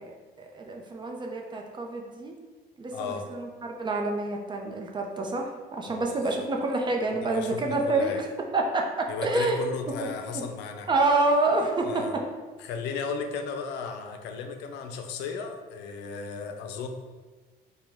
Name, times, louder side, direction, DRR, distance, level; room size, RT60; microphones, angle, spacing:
voice 1, 0.0-2.3 2.8-8.3 8.5-9.6 9.9-10.1 10.3-10.5 10.9-12.2, right 2 dB, 25° right, 1 dB, 0.6 m, -28 dB
voice 2, 2.9-3.3 5.9-6.5 7.1-8.2 9.1-10.9 11.8-12.1 12.6-16.9, left 5 dB, 85° left, 6 dB, 0.5 m, -35 dB
5.0 x 2.2 x 3.5 m, 1.4 s
cardioid pair, 110°, 17 cm